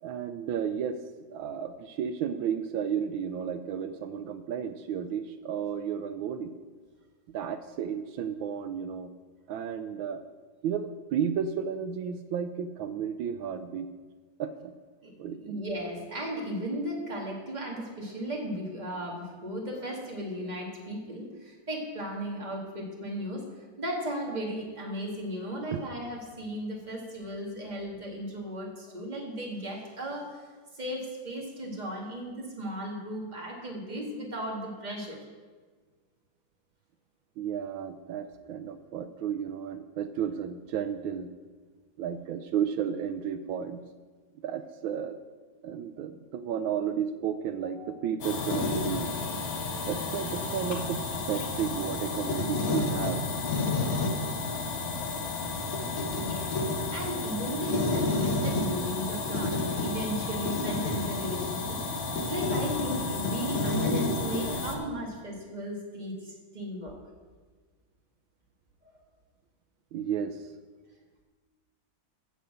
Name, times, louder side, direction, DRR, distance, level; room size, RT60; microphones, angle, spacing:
voice 1, 0.0-1.0 1.3-6.5 7.3-9.1 9.5-10.2 10.6-13.9 14.4-14.7 15.2-15.6 25.7-25.9 37.4-41.3 42.0-43.8 44.4-45.2 45.6-49.1 49.9-51.0 51.3-53.2 69.9-70.5, right 8 dB, 80° right, 9 dB, 1.3 m, -33 dB
voice 2, 15.4-23.4 23.8-30.5 30.7-35.2 47.6-47.9 56.1-56.6 56.9-61.8 62.3-66.9 68.8-68.9, equal, 20° right, -1 dB, 2.0 m, -36 dB
sound 1, 48.2-64.8, left 3 dB, 75° left, 2.0 m, -30 dB
9.7 x 6.7 x 7.7 m, 1.4 s
omnidirectional pair, 2.1 m